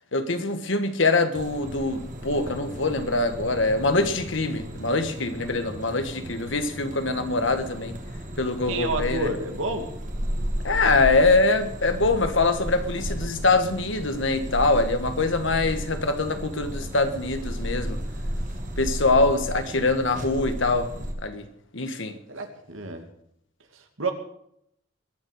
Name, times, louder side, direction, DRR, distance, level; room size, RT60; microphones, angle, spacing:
voice 1, 0.1-8.0 8.4-9.3 10.6-18.0 18.8-21.5 21.7-22.2, left 3 dB, 65° left, 1.6 m, -24 dB
sound 1, 1.3-21.1, equal, 40° right, 2.4 m, -34 dB
voice 2, 8.7-9.9 22.3-23.0 23.7-24.1, right 2 dB, 75° right, 2.4 m, -29 dB
21.5 x 7.5 x 6.6 m
head